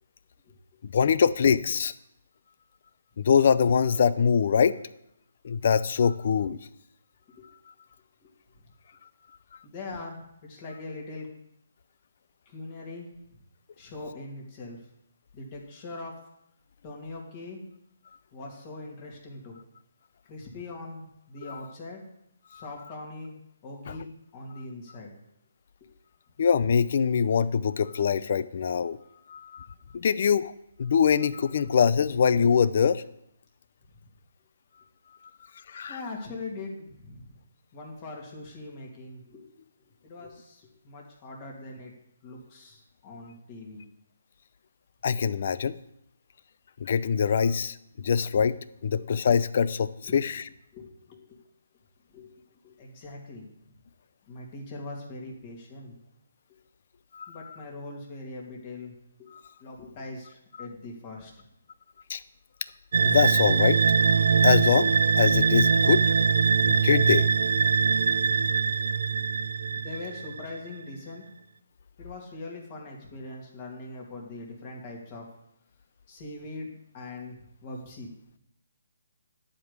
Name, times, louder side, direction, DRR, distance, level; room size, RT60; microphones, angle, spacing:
voice 1, 0.9-1.9 3.2-4.8 5.4-6.6 21.5-21.6 22.5-22.6 26.4-29.0 29.3-29.7 29.9-30.5 30.8-33.0 35.7-36.0 45.0-45.8 46.8-48.6 48.8-50.4 57.1-57.4 59.3-59.4 62.1-62.2 63.0-63.8 64.4-64.9 65.2-66.1 66.7-67.3, left 7 dB, 45° left, 15 dB, 0.5 m, -23 dB
voice 2, 9.6-11.3 12.5-13.1 13.8-14.8 15.3-16.1 16.8-17.6 18.3-19.6 20.3-22.0 22.5-23.3 23.6-25.1 25.8-25.9 35.9-37.4 37.7-39.5 40.0-41.9 42.2-43.8 49.0-49.1 50.1-50.2 50.7-51.4 52.1-53.5 54.3-55.9 57.3-58.9 59.2-59.3 59.6-61.3 68.2-68.5 69.8-71.2 72.0-75.2 76.1-76.7 76.9-77.4 77.6-78.1, left 2 dB, 25° left, -1 dB, 2.6 m, -41 dB
sound 1, 62.9-70.5, right 6 dB, 60° right, 0.4 m, -22 dB
11.5 x 5.2 x 8.2 m, 0.78 s
hypercardioid pair, 165°, 0 cm